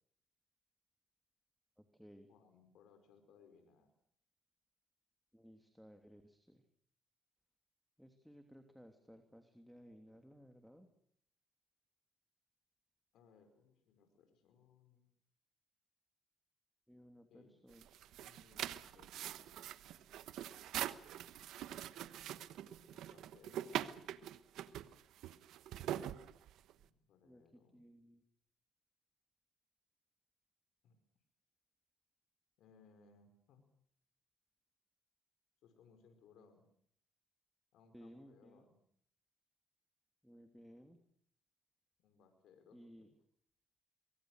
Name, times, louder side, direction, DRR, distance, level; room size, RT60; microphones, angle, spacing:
voice 1, 2.3-3.9 13.1-15.1 17.3-17.6 18.3-19.7 22.4-23.7 26.8-27.8 30.8-31.0 32.6-33.7 35.6-36.7 37.7-38.8 42.0-43.1, left 5 dB, 85° left, 6 dB, 5.3 m, -66 dB
voice 2, 5.3-6.6 8.0-10.9 16.9-17.9 23.5-23.7 27.2-27.4 27.7-28.2 37.9-38.6 40.2-41.0 42.7-43.1, equal, ahead, 6 dB, 3.0 m, -59 dB
sound 1, 17.7-26.8, right 11 dB, 85° right, 1.1 m, -44 dB
23.5 x 22.5 x 6.5 m, 0.67 s
cardioid pair, 90°, 0 cm